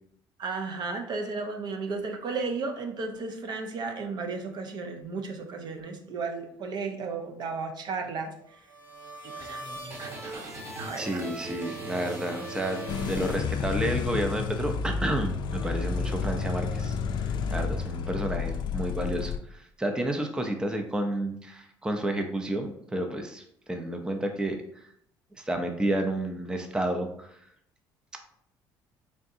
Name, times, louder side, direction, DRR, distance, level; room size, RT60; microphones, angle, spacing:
voice 1, 0.4-8.3 9.2-11.2, right 4 dB, 55° right, 5 dB, 0.6 m, -34 dB
sound 1, 8.4-14.0, right 2 dB, 30° right, 1.2 m, -39 dB
voice 2, 11.0-24.9 25.4-27.4, right 1 dB, 10° right, 4 dB, 0.5 m, -31 dB
sound 2, 12.9-19.4, left 6 dB, 60° left, 0.4 m, -30 dB
3.8 x 3.5 x 2.6 m, 0.71 s
cardioid pair, 95°, 9 cm